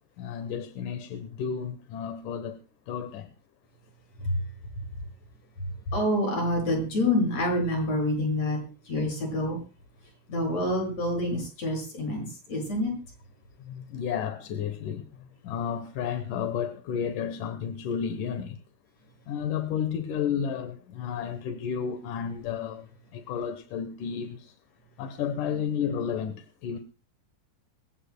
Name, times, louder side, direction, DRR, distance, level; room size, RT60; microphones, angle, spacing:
voice 1, 0.2-2.6 2.9-3.3 13.6-15.1 15.4-18.6 19.3-22.9 23.1-24.5 25.0-26.8, left 7 dB, 70° left, 2.3 m, -32 dB
voice 2, 5.9-8.6 8.9-9.6 10.3-12.9, left 1 dB, 40° left, 8.1 m, -27 dB
25.0 x 15.5 x 2.2 m
omnidirectional pair, 4.4 m